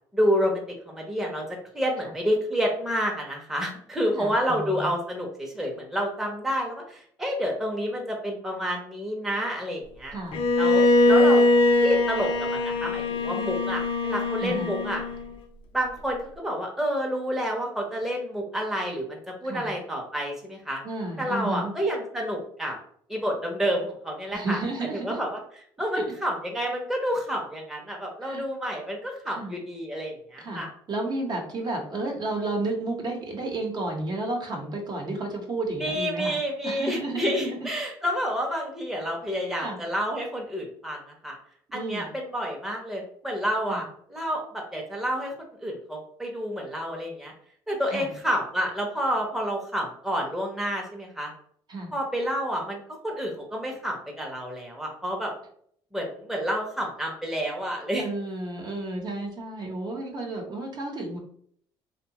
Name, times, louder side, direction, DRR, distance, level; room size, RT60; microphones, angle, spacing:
voice 1, 0.1-1.4 1.7-10.2 10.6-11.4 11.8-15.0 15.7-20.8 21.2-22.8 23.1-24.6 24.9-25.4 25.8-30.7 35.8-41.4 41.7-45.3 45.6-47.3 47.7-51.3 51.9-55.3 55.9-58.1, equal, 5° right, 0 dB, 0.7 m, -29 dB
voice 2, 4.2-4.9 10.1-10.4 14.4-14.7 19.4-19.7 20.8-21.7 24.3-25.2 25.9-26.0 28.2-28.4 29.3-29.5 30.4-30.6 30.9-36.4 36.6-37.7 39.6-39.8 41.7-42.1 43.7-43.8 47.9-48.1 51.7-51.9 58.0-61.2, right 2 dB, 45° right, 1 dB, 0.8 m, -32 dB
Bowed string instrument, 10.3-15.3, left 2 dB, 65° left, 0.5 m, -22 dB
2.7 x 2.2 x 2.8 m, 0.62 s
supercardioid pair, 80°, 10 cm